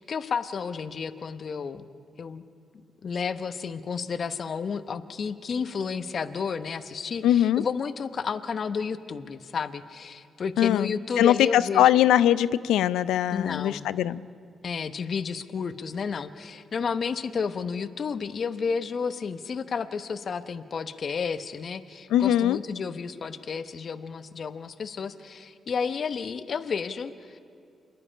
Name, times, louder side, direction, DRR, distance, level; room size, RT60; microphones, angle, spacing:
voice 1, 0.0-1.9 2.2-2.4 3.0-11.9 13.3-13.9 14.6-27.4, left 5 dB, 55° left, 11 dB, 0.9 m, -31 dB
voice 2, 7.2-7.6 10.6-14.2 22.1-22.6, left 11 dB, 80° left, 17 dB, 0.4 m, -21 dB
27.5 x 11.0 x 9.9 m, 2.4 s
hypercardioid pair, 45°, 0 cm